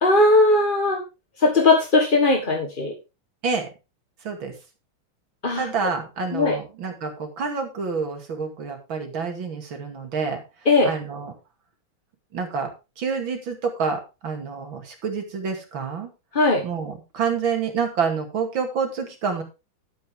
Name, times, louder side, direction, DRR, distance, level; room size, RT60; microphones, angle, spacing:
voice 1, 0.0-1.0 1.4-3.0 5.4-5.7 6.3-6.6 10.6-10.9 16.3-16.6, left 2 dB, 30° left, 4 dB, 1.2 m, -18 dB
voice 2, 5.5-10.4 10.8-11.3 12.3-12.7 13.0-16.1 16.6-19.4, right 5 dB, 70° right, 4 dB, 3.0 m, -28 dB
11.5 x 9.4 x 3.6 m, 0.27 s
omnidirectional pair, 2.3 m